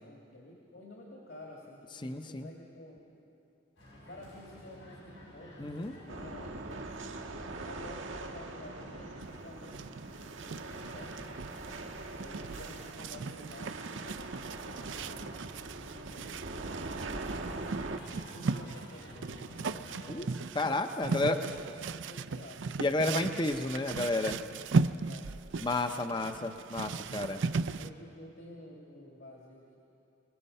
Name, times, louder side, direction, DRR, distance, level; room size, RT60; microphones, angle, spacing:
voice 1, 0.0-3.1 4.1-11.3 12.0-17.7 18.3-20.5 21.0-22.9 24.7-26.4 27.8-29.8, left 1 dB, 65° left, -3 dB, 2.5 m, -51 dB
voice 2, 2.0-2.5 5.6-5.9 20.1-20.3 20.5-21.4 22.8-24.4 25.6-27.4, left 2 dB, 25° left, 7 dB, 0.6 m, -31 dB
sound 1, 3.8-20.0, equal, 90° left, 7.1 m, -52 dB
sound 2, 6.1-18.0, right 2 dB, 90° right, 1.5 m, -42 dB
sound 3, 9.2-27.9, right 4 dB, 75° right, 0.5 m, -37 dB
25.5 x 19.5 x 5.5 m, 2.7 s
head